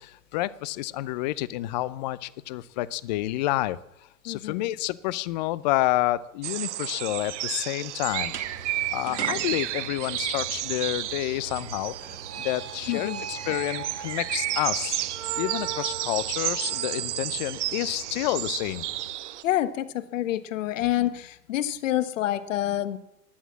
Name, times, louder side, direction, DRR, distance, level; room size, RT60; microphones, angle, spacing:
voice 1, 0.0-3.8 4.2-8.3 8.9-15.0 15.4-18.8, left 16 dB, 30° left, 19 dB, 0.6 m, -29 dB
voice 2, 4.2-4.6 12.9-13.2 19.4-23.0, left 13 dB, 55° left, 13 dB, 1.4 m, -27 dB
sound 1, 6.4-19.4, right 14 dB, 50° right, 0.9 m, -32 dB
sound 2, 8.2-19.1, right 7 dB, 75° right, 2.1 m, -40 dB
16.0 x 11.0 x 7.4 m, 0.87 s
hypercardioid pair, 115°, 47 cm